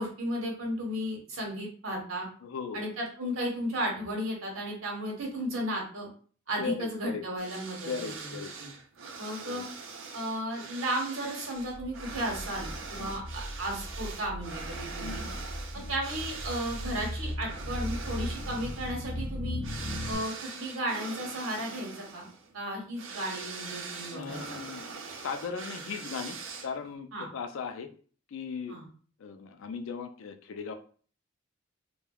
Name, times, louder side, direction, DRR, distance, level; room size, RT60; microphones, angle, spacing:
voice 1, 0.0-2.3 2.7-6.1 6.5-8.7 9.2-9.6 10.1-15.2 15.9-19.6 20.1-22.3 22.5-24.6 27.1-27.3 28.7-28.8, equal, 90° right, -1 dB, 1.1 m, -34 dB
voice 2, 2.4-2.9 6.6-7.2 7.9-8.5 9.4-9.7 13.0-13.1 15.0-15.4 15.8-15.9 24.1-26.4 26.6-27.9 28.3-28.8 29.2-30.7, left 5 dB, 70° left, 8 dB, 0.4 m, -38 dB
sound 1, 7.4-26.9, right 4 dB, 65° right, 0.5 m, -43 dB
sound 2, 11.7-20.2, equal, ahead, 1.1 m, -38 dB
3.2 x 2.2 x 2.3 m, 0.42 s
head